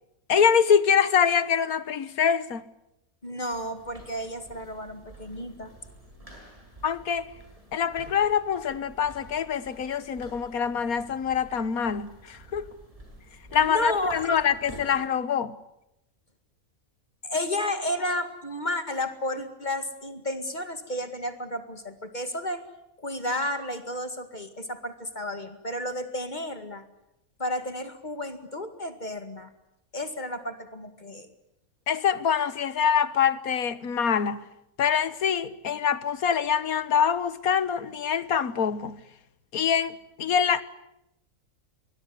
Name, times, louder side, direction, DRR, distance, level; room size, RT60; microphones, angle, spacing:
voice 1, 0.3-2.6 6.8-7.3 7.7-12.7 13.5-15.5 31.9-34.4 34.8-39.0 39.5-40.6, left 7 dB, 85° left, 1.6 m, -25 dB
voice 2, 3.2-5.7 13.6-14.4 17.2-22.6 23.0-26.8 27.4-29.5 29.9-31.3, left 1 dB, 30° left, 2.1 m, -32 dB
sound 1, 3.5-15.1, right 2 dB, 25° right, 7.5 m, -49 dB
23.5 x 21.0 x 9.9 m
omnidirectional pair, 1.5 m